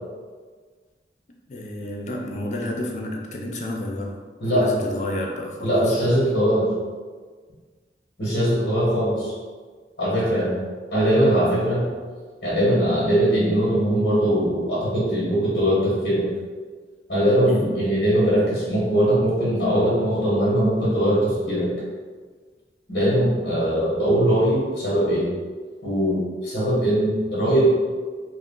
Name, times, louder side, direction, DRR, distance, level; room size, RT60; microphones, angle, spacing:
voice 1, 1.5-4.2 4.5-6.2 17.5-17.8 21.5-21.7, left 1 dB, 40° left, 1 dB, 0.4 m, -31 dB
voice 2, 4.4-4.7 5.6-6.7 8.2-9.3 10.0-10.6 10.9-11.9 12.4-16.3 17.1-21.7 22.9-25.3 25.8-27.7, equal, 70° left, -9 dB, 1.2 m, -21 dB
3.2 x 2.5 x 3.6 m, 1.5 s
head